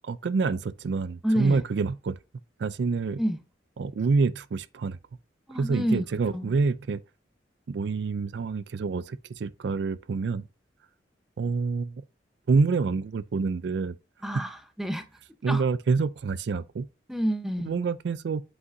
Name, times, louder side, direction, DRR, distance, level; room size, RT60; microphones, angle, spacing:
voice 1, 0.0-2.2 2.6-3.2 3.8-5.0 5.5-7.0 7.7-10.5 11.4-12.0 12.5-14.0 15.4-16.9 17.6-18.4, right 4 dB, 65° right, 0.4 m, -27 dB
voice 2, 1.2-1.6 3.2-3.4 5.5-6.0 6.3-6.5 14.2-15.0 15.5-15.6 17.1-17.8, equal, ahead, 0.8 m, -28 dB
8.1 x 5.5 x 2.6 m
head